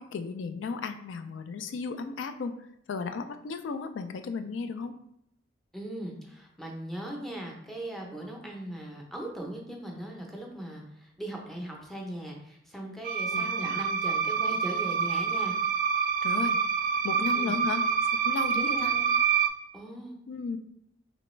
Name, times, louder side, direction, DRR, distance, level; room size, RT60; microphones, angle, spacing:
voice 1, 0.0-2.6 2.9-4.9 13.3-13.9 16.2-16.6 17.0-17.8 18.2-18.9 20.3-20.6, left 4 dB, 75° left, 8 dB, 0.3 m, -34 dB
voice 2, 5.7-15.6 17.3-17.6 18.5-19.1 19.7-20.2, right 1 dB, ahead, -1 dB, 0.6 m, -39 dB
sound 1, 13.0-19.5, right 6 dB, 45° right, 0.3 m, -27 dB
3.3 x 3.0 x 3.1 m, 0.74 s
head